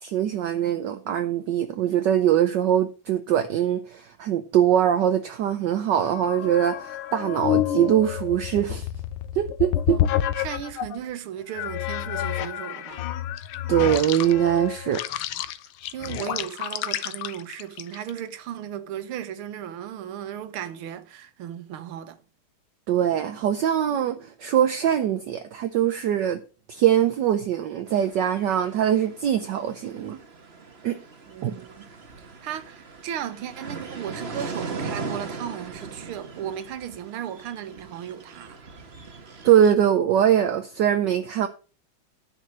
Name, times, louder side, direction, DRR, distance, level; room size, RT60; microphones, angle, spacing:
voice 1, 0.0-8.9 9.4-10.0 13.7-15.0 22.9-26.4 26.7-30.2 30.8-31.0 31.4-31.5 39.4-41.5, right 10 dB, 65° right, 1.2 m, -22 dB
sound 1, 6.0-11.0 11.5-18.2, left 11 dB, 90° left, 1.6 m, -29 dB
voice 2, 9.9-13.1 15.9-22.2 31.3-31.9 32.2-38.6, right 10 dB, 85° right, 1.9 m, -36 dB
sound 2, 27.9-39.7, right 4 dB, 35° right, 1.3 m, -39 dB
10.0 x 6.5 x 6.2 m
omnidirectional pair, 2.3 m